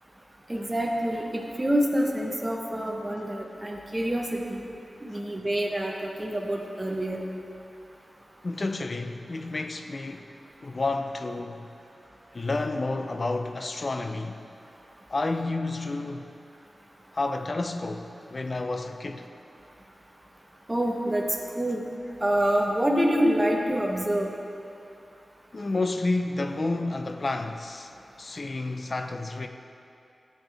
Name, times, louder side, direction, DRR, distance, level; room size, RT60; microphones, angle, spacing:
voice 1, 0.5-4.7 5.0-7.2 20.7-21.3 21.5-21.8 22.2-24.3, equal, 20° right, 1.1 m, -26 dB
voice 2, 8.4-10.3 10.6-11.7 12.3-14.4 15.1-16.3 17.1-19.3 25.5-29.5, left 2 dB, 50° left, 0.6 m, -30 dB
13.0 x 8.4 x 3.4 m
cardioid pair, 50°, 0 cm